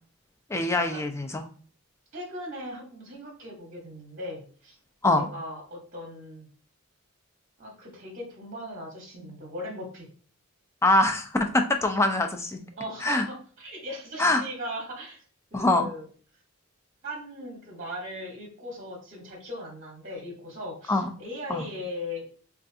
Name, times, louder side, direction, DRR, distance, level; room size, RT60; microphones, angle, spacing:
voice 1, 0.5-1.4 5.0-5.3 10.8-12.6 13.0-13.3 14.2-14.4 15.5-15.9 20.9-21.1 21.5-21.7, left 2 dB, 10° left, 5 dB, 0.4 m, -24 dB
voice 2, 2.1-4.8 5.2-6.5 7.6-10.1 12.8-15.2 15.5-16.0 17.0-22.3, left 1 dB, 40° right, 0 dB, 0.8 m, -38 dB
4.5 x 2.4 x 2.6 m, 0.42 s
head